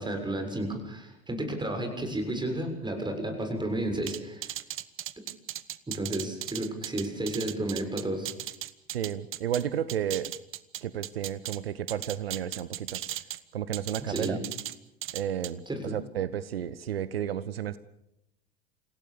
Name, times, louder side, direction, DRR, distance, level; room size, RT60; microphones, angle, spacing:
voice 1, 0.0-4.5 5.9-8.3 14.1-14.4 15.7-15.8, right 1 dB, 15° right, 5 dB, 6.9 m, -32 dB
sound 1, 4.1-9.6 9.9-11.6 11.9-13.4 13.7-14.7 15.0-15.5, right 13 dB, 45° right, 1.2 m, -37 dB
voice 2, 8.9-10.3 10.8-13.0 13.5-14.4 15.1-17.8, right 10 dB, 85° right, 17 dB, 0.8 m, -32 dB
27.5 x 17.0 x 6.9 m, 0.84 s
hypercardioid pair, 65°, 29 cm